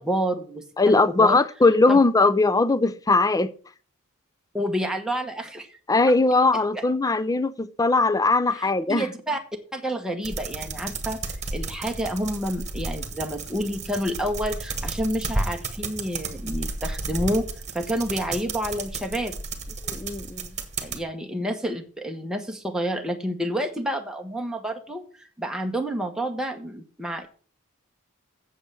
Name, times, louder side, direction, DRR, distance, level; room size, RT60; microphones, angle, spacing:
voice 1, 0.0-1.4 1.9-2.0 4.5-5.8 6.7-6.8 8.6-9.4 9.7-17.5 17.7-19.4 20.8-27.3, equal, 5° right, 1.0 m, -29 dB
voice 2, 0.8-3.5 5.9-9.1 19.8-20.5, left 3 dB, 15° left, 0.5 m, -20 dB
sound 1, 10.2-21.0, right 3 dB, 30° right, 1.4 m, -32 dB
7.9 x 7.4 x 6.6 m
head